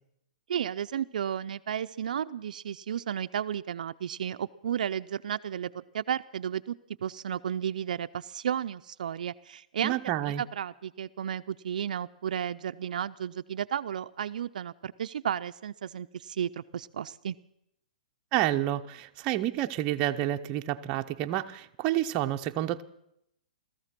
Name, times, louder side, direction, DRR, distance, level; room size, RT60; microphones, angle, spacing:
voice 1, 0.5-10.0 10.4-17.4, right 9 dB, 70° right, 10 dB, 0.5 m, -33 dB
voice 2, 9.8-10.4 18.3-22.8, right 13 dB, 25° right, 6 dB, 0.7 m, -29 dB
17.0 x 14.5 x 6.0 m, 0.76 s
hypercardioid pair, 155°, 5 cm